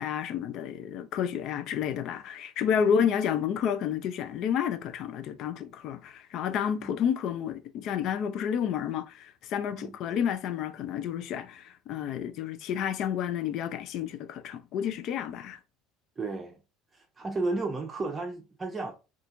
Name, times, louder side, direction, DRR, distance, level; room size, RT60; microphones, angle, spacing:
voice 1, 0.0-15.6, left 8 dB, 60° left, 0.4 m, -30 dB
voice 2, 16.2-16.6 16.9-18.9, right 3 dB, 20° right, 0.7 m, -33 dB
4.2 x 2.4 x 2.5 m
supercardioid pair, 105°, 0 cm